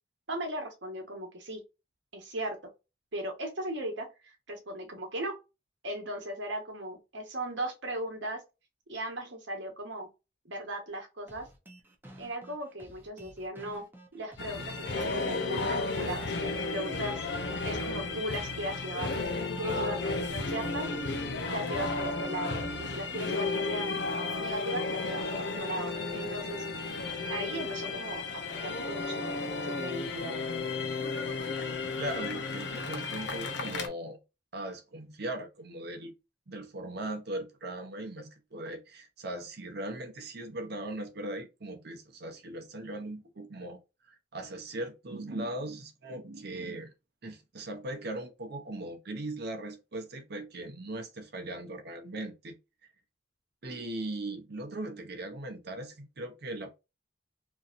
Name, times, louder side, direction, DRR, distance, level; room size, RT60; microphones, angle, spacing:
voice 1, 0.3-1.6 2.1-2.6 3.1-5.3 5.8-8.4 8.9-10.1 10.4-11.5 12.2-13.8 14.1-17.2 17.6-21.2 21.5-24.0 24.4-26.6 27.3-29.3 29.6-30.4, right 1 dB, 75° right, 1.1 m, -37 dB
sound 1, 11.3-17.3, equal, 10° right, 0.7 m, -52 dB
sound 2, 14.4-33.9, left 3 dB, 65° left, 0.6 m, -33 dB
voice 2, 32.0-34.2 34.5-36.1 36.5-43.8 44.1-46.9 47.2-52.6 53.6-56.8, right 1 dB, 60° right, 0.7 m, -39 dB
3.0 x 2.7 x 2.5 m
head